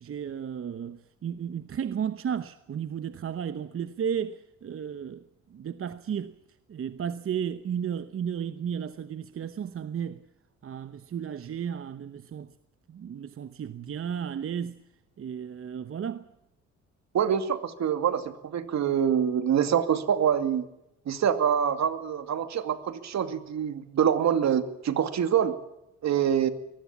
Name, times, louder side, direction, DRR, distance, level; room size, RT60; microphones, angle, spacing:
voice 1, 0.0-5.2 5.5-6.3 6.7-10.2 10.6-12.5 12.9-14.8 15.2-16.3, right 8 dB, 45° right, 1.0 m, -33 dB
voice 2, 17.1-20.7 21.1-25.5 26.0-26.5, right 8 dB, 65° right, 2.4 m, -25 dB
23.0 x 19.0 x 7.2 m
cardioid pair, 90°, 30 cm